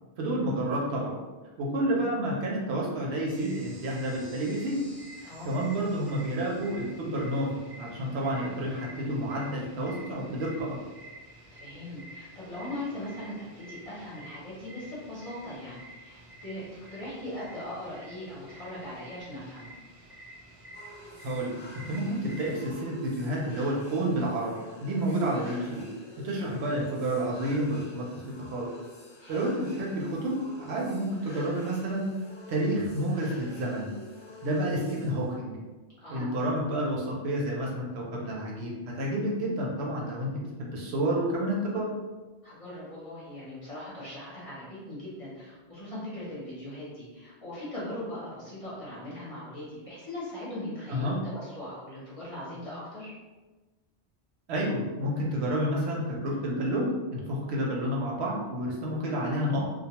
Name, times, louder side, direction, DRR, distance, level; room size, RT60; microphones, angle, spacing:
voice 1, 0.2-1.2 1.6-4.8 5.4-10.8 21.2-25.8 26.2-28.7 29.3-32.0 32.5-33.9 34.4-35.6 36.1-41.9 50.9-51.2 54.5-59.7, right 1 dB, 70° right, -3 dB, 0.9 m, -30 dB
sound 1, 3.3-22.7, right 1 dB, 35° right, 0.4 m, -49 dB
voice 2, 5.2-5.5 11.5-16.6 16.9-19.7 25.1-25.2 29.2-29.5 36.0-36.3 42.4-53.1, left 1 dB, 35° left, -8 dB, 0.7 m, -40 dB
sound 2, 20.7-35.4, left 1 dB, 85° left, 0.9 m, -49 dB
2.2 x 2.2 x 2.9 m, 1.2 s
omnidirectional pair, 1.1 m